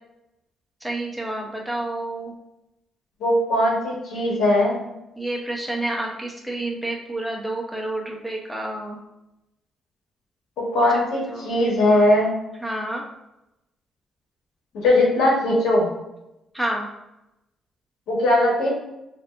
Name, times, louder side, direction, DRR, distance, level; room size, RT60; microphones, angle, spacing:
voice 1, 0.8-2.3 5.2-9.0 10.7-11.0 11.3-11.5 12.6-13.0 16.5-16.9, right 1 dB, ahead, -2 dB, 0.8 m, -29 dB
voice 2, 3.2-4.8 10.6-12.3 14.8-15.9 18.1-18.7, left 1 dB, 85° left, -4 dB, 1.4 m, -19 dB
5.0 x 2.7 x 2.5 m, 0.89 s
cardioid pair, 90°, 0 cm